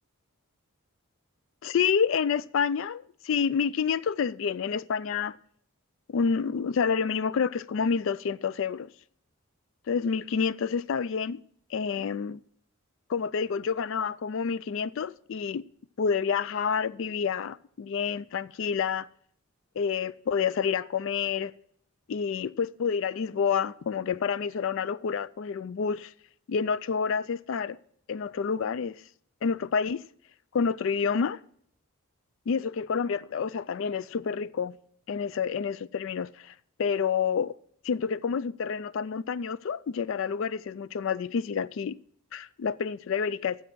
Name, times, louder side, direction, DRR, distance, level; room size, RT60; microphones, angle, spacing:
voice 1, 1.6-5.4 6.1-8.9 9.9-11.4 11.7-12.4 13.1-15.6 16.0-19.1 19.8-21.5 22.1-26.1 26.5-27.8 28.1-29.0 29.4-30.0 30.5-31.4 32.5-34.8 35.1-37.5 37.8-42.0 42.3-43.6, left 6 dB, 60° left, 0.3 m, -28 dB
11.0 x 7.2 x 6.1 m
head